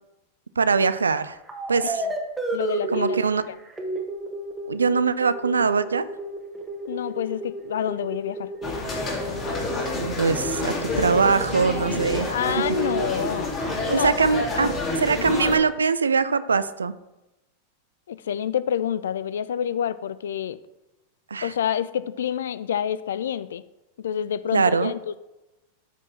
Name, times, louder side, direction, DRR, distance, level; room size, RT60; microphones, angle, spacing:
voice 1, 0.6-1.4 1.7-2.1 2.9-3.4 4.7-6.1 9.9-12.6 13.9-16.9 21.3-21.5 24.5-24.9, right 5 dB, 75° right, 14 dB, 0.4 m, -22 dB
sound 1, 1.5-3.2 3.6-15.3, right 2 dB, 10° right, 1.5 m, -32 dB
voice 2, 2.5-3.2 3.5-3.6 6.9-8.5 12.3-13.5 13.9-14.1 14.5-14.7 18.1-20.6 21.4-23.6 24.0-25.2, left 9 dB, 60° left, 17 dB, 0.4 m, -28 dB
sound 2, 8.6-15.6, left 3 dB, 30° left, 2.2 m, -29 dB
12.5 x 4.3 x 4.3 m, 1.0 s
figure-of-eight pair, 90°, 0 cm